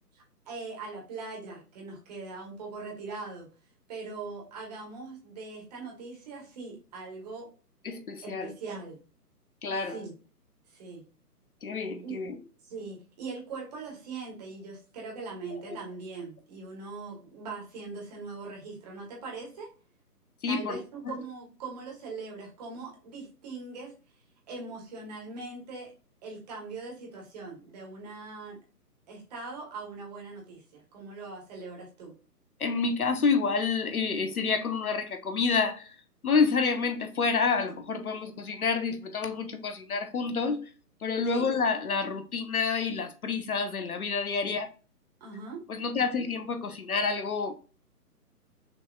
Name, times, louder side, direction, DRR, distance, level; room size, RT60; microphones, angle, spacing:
voice 1, 0.1-3.5 3.9-7.5 8.2-9.0 9.8-10.1 10.7-11.0 12.0-12.2 12.6-19.7 20.5-23.9 24.5-25.9 26.2-28.6 29.1-32.1 41.3-41.4 44.4-44.6 45.2-45.6, right 4 dB, 25° right, 1.6 m, -41 dB
voice 2, 7.8-8.5 9.6-10.0 11.6-12.4 20.4-20.8 32.6-36.0 36.2-40.7 41.0-44.7 45.7-47.5, left 5 dB, 60° left, 0.9 m, -28 dB
6.1 x 3.3 x 2.3 m
figure-of-eight pair, 140°, 48 cm